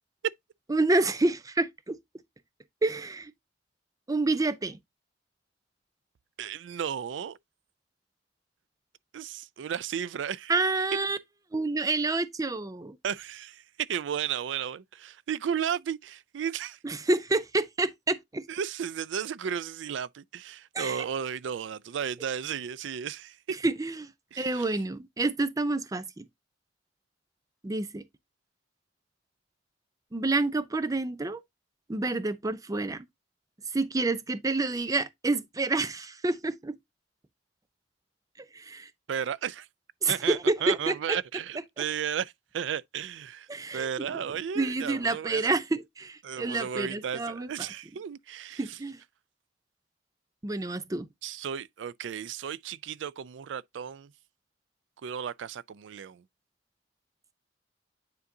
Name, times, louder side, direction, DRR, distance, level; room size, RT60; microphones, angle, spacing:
voice 1, 0.7-2.0 2.8-3.3 4.1-4.8 10.5-11.2 11.5-13.0 16.8-18.5 20.7-21.0 23.6-26.2 27.6-28.0 30.1-31.4 31.9-33.0 33.7-36.7 38.5-38.9 40.0-41.2 41.8-41.9 43.5-44.2 44.6-47.5 48.6-49.0 50.4-51.1, right 2 dB, 20° right, 0.5 m, -28 dB
voice 2, 6.4-7.4 9.1-10.5 13.0-13.6 13.9-16.8 18.5-23.4 24.3-24.7 39.1-39.7 40.1-43.5 43.7-45.5 46.2-48.8 51.2-54.1 55.0-56.2, right 8 dB, 80° right, 0.4 m, -34 dB
9.5 x 3.9 x 2.7 m
head